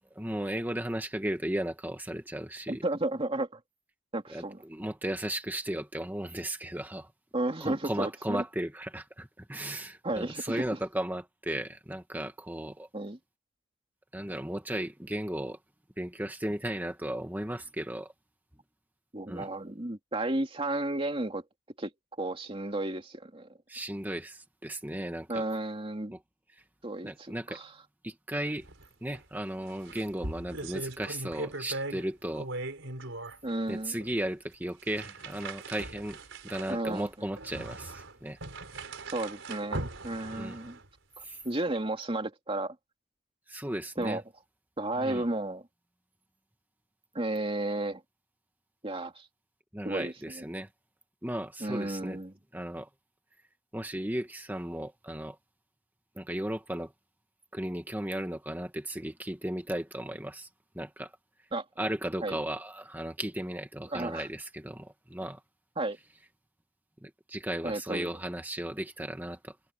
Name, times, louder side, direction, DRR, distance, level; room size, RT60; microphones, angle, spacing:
voice 1, 0.1-2.8 4.3-7.1 7.6-12.9 14.1-15.6 16.0-18.1 19.3-19.5 23.7-25.4 26.1-26.2 27.0-27.6 28.0-28.7 29.0-32.5 33.7-36.2 36.4-38.4 40.3-40.6 41.2-41.4 43.5-44.2 45.0-45.2 49.7-50.7 51.2-52.2 52.5-52.9 53.7-55.4 56.2-56.9 57.5-60.5 60.7-61.1 61.8-65.4 67.0-69.5, right 1 dB, 10° right, 1.6 m, -35 dB
voice 2, 2.7-3.6 4.1-4.6 7.3-8.4 10.0-10.6 12.9-13.2 19.1-21.4 21.8-21.9 22.2-23.5 25.3-26.1 26.8-27.7 33.4-34.0 36.7-37.3 39.1-40.8 41.2-42.8 44.0-44.2 44.8-45.7 47.1-48.0 48.8-49.3 49.8-50.4 51.6-52.3 61.5-61.7 62.2-62.4 63.9-64.3 65.8-66.0 67.6-68.1, right 2 dB, 30° right, 2.5 m, -33 dB
sound 1, 28.6-28.9 29.1-29.2 29.6-32.1 32.3-33.4 34.0-34.1 34.8-40.9, right 2 dB, 75° right, 4.3 m, -39 dB
head